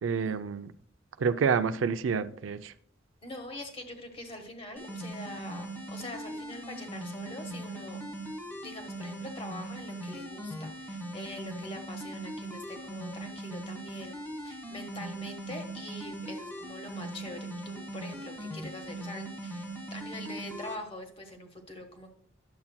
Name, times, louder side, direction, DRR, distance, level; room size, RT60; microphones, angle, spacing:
voice 1, 0.0-0.7 1.2-2.7, right 6 dB, 80° right, 0.4 m, -28 dB
voice 2, 3.2-8.0 8.6-14.2 14.4-22.1, left 1 dB, 30° left, 1.3 m, -44 dB
sound 1, 4.8-20.8, right 1 dB, 10° left, 1.2 m, -40 dB
10.5 x 7.3 x 2.2 m
head